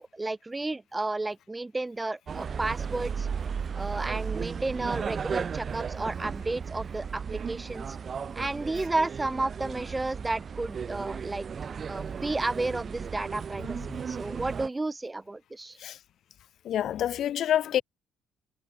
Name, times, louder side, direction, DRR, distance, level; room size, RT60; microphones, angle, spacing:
voice 1, 0.0-3.3 3.7-8.0 8.3-11.5 11.9-13.8 14.1-15.8, right 2 dB, 15° right, 6.5 m, -32 dB
sound 1, 2.3-14.7, right 6 dB, 40° right, 2.3 m, -35 dB
voice 2, 16.6-17.8, left 11 dB, 60° left, 0.9 m, -27 dB
cardioid pair, 90°, 0 cm